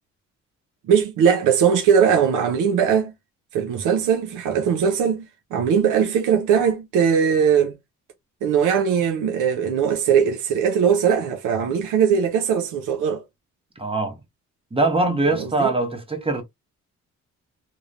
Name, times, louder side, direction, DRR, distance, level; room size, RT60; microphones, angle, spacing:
voice 1, 0.8-3.1 3.5-7.8 8.4-13.2 15.3-15.7, right 7 dB, 85° right, 0.6 m, -20 dB
voice 2, 13.8-14.2 14.7-16.4, right 2 dB, 20° right, 0.9 m, -22 dB
3.0 x 2.0 x 2.4 m
cardioid pair, 90°, 30 cm